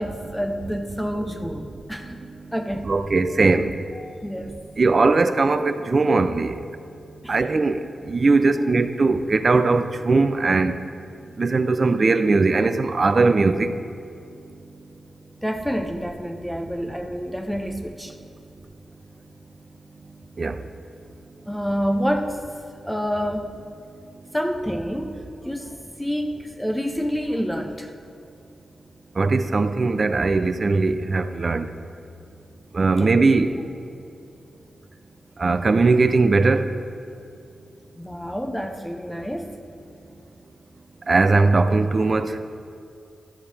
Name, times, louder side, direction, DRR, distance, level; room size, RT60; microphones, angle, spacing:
voice 1, 0.0-2.2 2.5-2.9 3.9-4.6 7.2-7.5 15.4-18.1 21.5-22.4 22.8-23.5 24.3-27.9 33.0-33.1 38.0-39.5, equal, 5° left, 4 dB, 0.6 m, -28 dB
voice 2, 2.8-3.7 4.8-6.6 7.3-7.8 8.1-10.8 11.4-13.7 20.4-20.6 29.2-31.7 32.7-33.6 35.4-36.7 41.1-42.4, right 3 dB, 45° right, 10 dB, 0.5 m, -19 dB
13.0 x 7.0 x 3.4 m, 2.5 s
cardioid pair, 70°, 0 cm